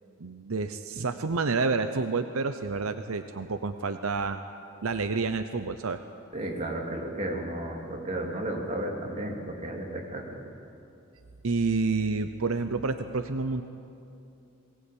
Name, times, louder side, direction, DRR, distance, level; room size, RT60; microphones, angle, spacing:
voice 1, 0.2-4.4 4.8-6.0 11.4-13.6, right 4 dB, 80° right, 9 dB, 0.8 m, -29 dB
voice 2, 6.3-10.4, right 1 dB, 35° right, -1 dB, 3.2 m, -33 dB
22.0 x 18.0 x 8.7 m, 2.7 s
head